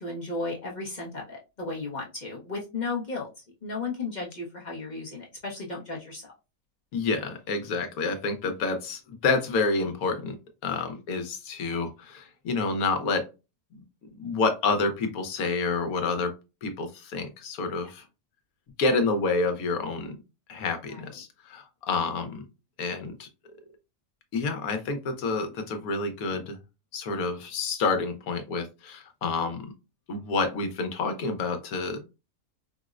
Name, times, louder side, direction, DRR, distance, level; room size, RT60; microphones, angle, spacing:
voice 1, 0.0-3.3 3.6-6.3 10.7-10.8 17.8-17.9 20.9-21.0, left 3 dB, 40° left, -3 dB, 0.6 m, -34 dB
voice 2, 6.9-10.4 10.6-13.3 14.2-16.3 16.6-18.0 18.8-20.2 20.5-22.5 22.8-23.3 24.3-26.6 26.9-29.7 30.1-32.0, left 3 dB, 75° left, 6 dB, 1.2 m, -28 dB
4.6 x 2.0 x 2.4 m, 0.28 s
omnidirectional pair, 1.6 m